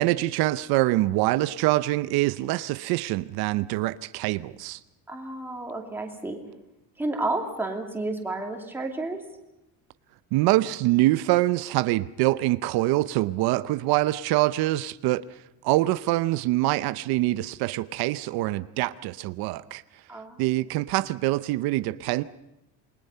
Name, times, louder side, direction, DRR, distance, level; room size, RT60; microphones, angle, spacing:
voice 1, 0.0-4.8 10.3-15.2 15.6-19.8 20.4-22.2, right 17 dB, 80° right, 0.7 m, -24 dB
voice 2, 5.1-6.4 7.0-9.2 20.1-20.4, right 2 dB, 5° right, 2.6 m, -31 dB
28.0 x 21.0 x 5.6 m
cardioid pair, 170°, 37 cm